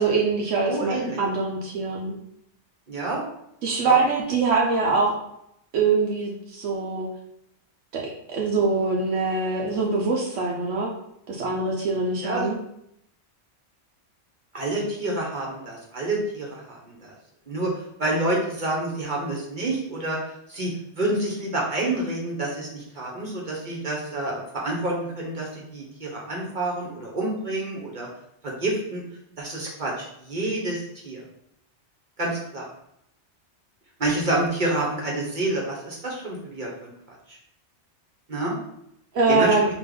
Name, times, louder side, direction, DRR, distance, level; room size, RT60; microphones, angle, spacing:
voice 1, 0.0-2.1 3.6-5.2 5.7-7.1 7.9-8.0 8.3-10.9 11.3-12.6 39.1-39.7, right 4 dB, 85° right, -2 dB, 1.0 m, -23 dB
voice 2, 0.6-1.2 2.9-3.3 3.8-4.0 12.2-12.5 14.5-17.1 17.5-20.7 20.9-28.1 28.4-29.0 29.4-31.2 32.2-32.7 34.0-37.4 38.3-38.6 39.3-39.5, right 2 dB, 45° right, -3 dB, 0.9 m, -28 dB
3.4 x 2.9 x 3.7 m, 0.77 s
omnidirectional pair, 1.2 m